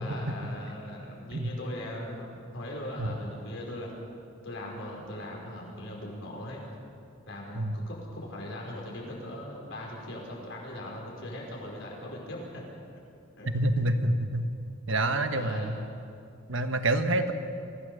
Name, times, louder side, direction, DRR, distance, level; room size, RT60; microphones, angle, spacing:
voice 1, 0.0-3.9 4.4-6.6 7.3-12.6 13.4-13.9 15.3-15.7, left 1 dB, 65° left, -2 dB, 5.3 m, -40 dB
voice 2, 7.5-7.9 13.5-14.5 14.9-15.8 16.5-17.3, right 1 dB, 65° right, 7 dB, 1.3 m, -27 dB
23.5 x 16.0 x 6.9 m, 2.5 s
head